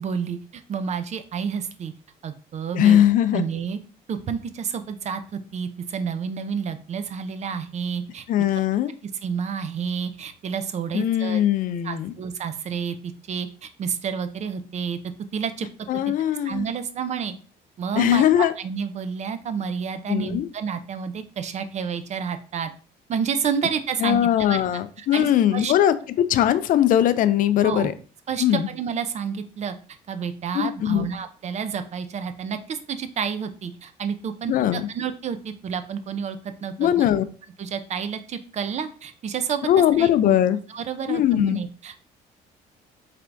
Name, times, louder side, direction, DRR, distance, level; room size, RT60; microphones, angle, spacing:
voice 1, 0.0-1.9 2.2-3.0 3.3-3.8 4.1-8.3 9.0-11.4 11.8-15.0 15.3-15.7 15.9-16.0 16.4-17.3 17.8-22.7 23.1-24.6 25.0-25.7 27.6-27.9 28.3-29.7 30.1-37.1 37.6-39.7 40.0-40.4 40.7-42.0, right 7 dB, 40° right, 9 dB, 0.5 m, -30 dB
voice 2, 2.7-3.4 8.3-8.9 10.9-12.1 15.9-16.7 18.0-18.5 20.1-20.5 24.0-27.9 28.4-28.7 30.5-31.1 34.5-34.9 36.8-37.2 39.7-40.6 41.1-41.6, left 11 dB, 55° left, 13 dB, 0.4 m, -20 dB
4.4 x 3.3 x 2.5 m, 0.38 s
cardioid pair, 110°, 17 cm